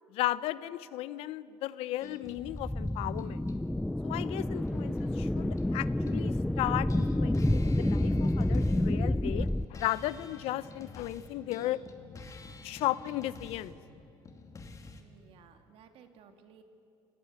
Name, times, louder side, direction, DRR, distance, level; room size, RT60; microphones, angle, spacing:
voice 1, 0.1-3.5 4.0-11.8 12.6-13.8, left 15 dB, 80° left, 17 dB, 0.7 m, -35 dB
sound 1, 2.0-6.4 6.7-15.0, left 3 dB, 35° left, 2.5 m, -50 dB
sound 2, 2.4-9.6, left 1 dB, 5° left, 0.5 m, -29 dB
voice 2, 15.0-16.6, right 7 dB, 70° right, 6 dB, 2.3 m, -57 dB
28.5 x 19.0 x 8.4 m, 2.7 s
cardioid pair, 95°, 10 cm